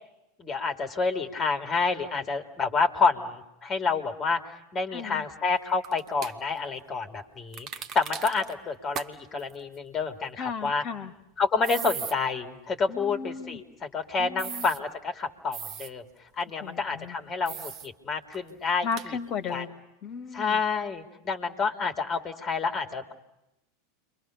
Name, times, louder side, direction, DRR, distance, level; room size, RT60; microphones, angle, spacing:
voice 1, 0.4-4.4 4.7-7.7 7.9-10.4 10.6-10.8 11.4-16.0 16.4-18.9 19.5-19.6 20.3-23.1, left 4 dB, 25° left, 7 dB, 2.9 m, -28 dB
voice 2, 4.9-5.3 10.4-11.1 12.9-13.6 14.2-14.7 16.5-17.2 18.8-20.6, left 6 dB, 40° left, 9 dB, 2.3 m, -35 dB
sound 1, 5.8-6.3 7.5-8.5 8.9-9.1 9.4-9.5 11.6-12.1 14.4-14.8 15.5-15.9 17.5-17.9 18.3-18.4 18.9-19.1, right 8 dB, 40° right, 1.4 m, -37 dB
29.5 x 24.0 x 6.7 m, 0.90 s
figure-of-eight pair, 85°, 0 cm